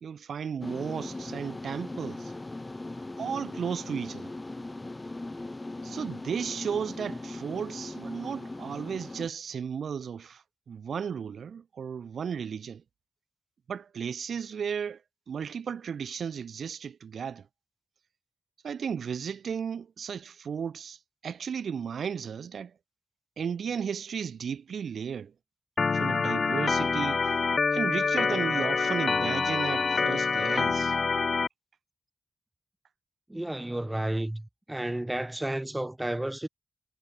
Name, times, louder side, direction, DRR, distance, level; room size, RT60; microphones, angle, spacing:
voice 1, 0.0-2.3 3.2-4.3 5.8-12.8 13.7-15.0 15.3-17.5 18.6-22.7 23.4-25.3 25.9-27.2 27.7-31.0, right 7 dB, 90° right, 2.3 m, -34 dB
sound 1, 0.6-9.3, left 2 dB, 20° left, 4.5 m, -39 dB
Organ, 25.8-31.5, left 5 dB, 55° left, 0.8 m, -26 dB
voice 2, 33.3-36.5, right 1 dB, 10° right, 7.1 m, -32 dB
wide cardioid pair, 105°, 0 cm